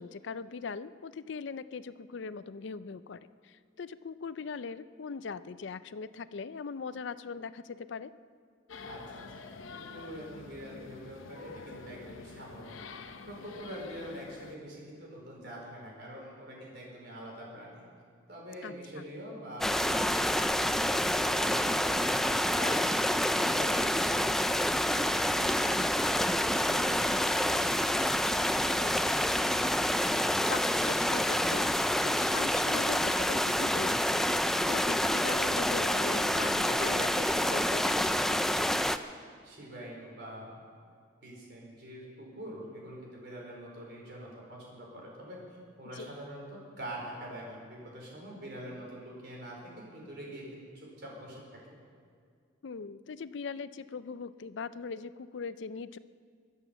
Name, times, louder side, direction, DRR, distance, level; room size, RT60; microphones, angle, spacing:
voice 1, 0.0-8.1 18.6-19.0 30.5-31.6 32.0-38.6 46.0-46.1 52.6-56.0, left 5 dB, 65° left, 15 dB, 0.4 m, -40 dB
sound 1, 8.7-14.6, left 4 dB, 85° left, 0.8 m, -47 dB
voice 2, 8.8-12.8 13.3-17.8 18.3-22.8 23.3-24.3 24.9-29.4 39.4-40.6 41.2-45.4 45.8-51.4, equal, 55° right, -2 dB, 4.6 m, -45 dB
sound 2, 19.6-39.0, left 1 dB, ahead, 0.3 m, -28 dB
23.0 x 8.2 x 7.1 m, 2.2 s
head